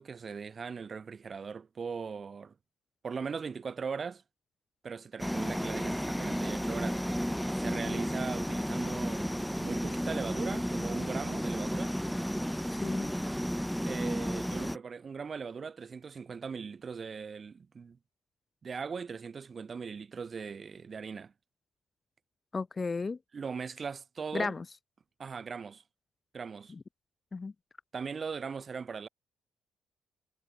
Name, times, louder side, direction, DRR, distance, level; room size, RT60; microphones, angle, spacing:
voice 1, 0.0-2.5 3.0-4.2 4.8-7.0 7.6-11.9 13.8-18.0 18.6-21.3 23.3-24.6 25.2-25.8 26.3-26.7 27.9-29.1, right 5 dB, 40° right, 5.3 m, -39 dB
sound 1, 5.2-14.8, equal, ahead, 2.2 m, -33 dB
voice 2, 7.7-8.0 12.7-13.1 22.5-23.2 24.3-24.6 26.7-26.8 27.3-27.5, left 4 dB, 30° left, 0.8 m, -35 dB
cardioid pair, 90°, 0 cm